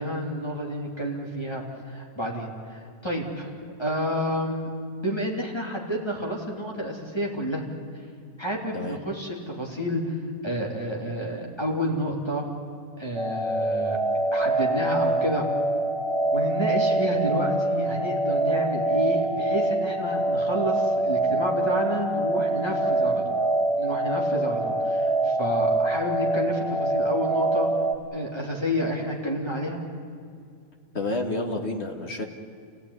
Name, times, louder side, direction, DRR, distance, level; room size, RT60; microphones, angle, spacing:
voice 1, 0.0-3.5 3.8-4.7 5.0-7.6 8.4-10.2 10.4-12.4 13.0-14.0 14.3-15.5 16.3-23.4 23.8-27.7 28.1-29.8, equal, 15° left, -2 dB, 3.3 m, -30 dB
sound 1, 13.1-27.9, right 2 dB, ahead, 1.6 m, -25 dB
voice 2, 30.9-32.3, left 2 dB, 45° left, 3 dB, 2.2 m, -29 dB
28.5 x 16.0 x 9.9 m, 2.3 s
omnidirectional pair, 1.5 m